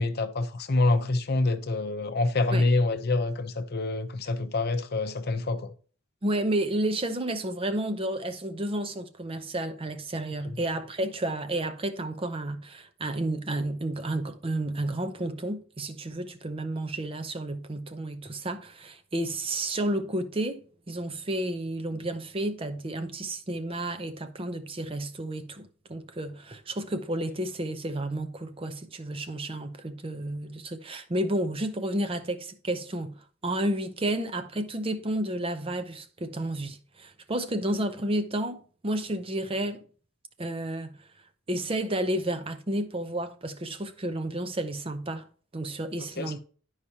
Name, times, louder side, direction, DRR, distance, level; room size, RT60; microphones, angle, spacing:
voice 1, 0.0-5.7 10.4-10.6 46.1-46.4, left 2 dB, 50° left, 0.7 m, -26 dB
voice 2, 6.2-20.6 20.9-39.8 40.4-41.0 41.5-45.3 45.5-46.4, right 1 dB, 25° right, 0.6 m, -31 dB
11.0 x 4.8 x 2.8 m
head